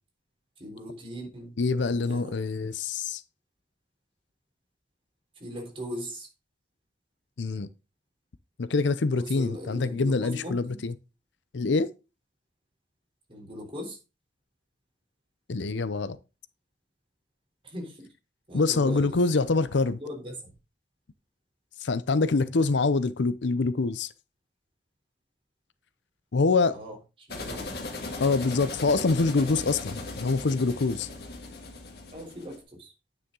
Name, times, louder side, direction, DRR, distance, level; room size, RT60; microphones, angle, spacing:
voice 1, 0.6-1.5 1.9-2.4 5.4-6.3 9.2-10.8 13.3-14.0 17.6-18.1 18.5-19.1 20.0-20.4 26.7-27.0 27.3-27.7 32.1-32.9, equal, 30° right, 3.4 m, -39 dB
voice 2, 1.6-3.2 7.4-7.7 8.6-10.9 11.5-11.9 15.5-16.2 18.5-20.0 21.8-24.1 26.3-26.8 28.2-31.1, left 3 dB, 80° left, 0.6 m, -25 dB
sound 1, 27.3-32.6, left 2 dB, 60° left, 1.9 m, -38 dB
9.7 x 5.9 x 3.8 m
head